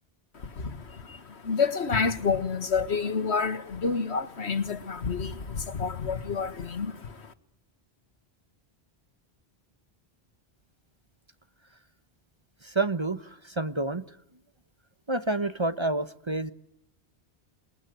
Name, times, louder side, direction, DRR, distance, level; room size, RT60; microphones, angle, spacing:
voice 1, 0.3-7.3, left 5 dB, 80° left, 1.9 m, -29 dB
voice 2, 12.6-14.0 15.1-16.5, right 2 dB, 25° right, 1.1 m, -29 dB
28.0 x 21.5 x 9.2 m
omnidirectional pair, 1.1 m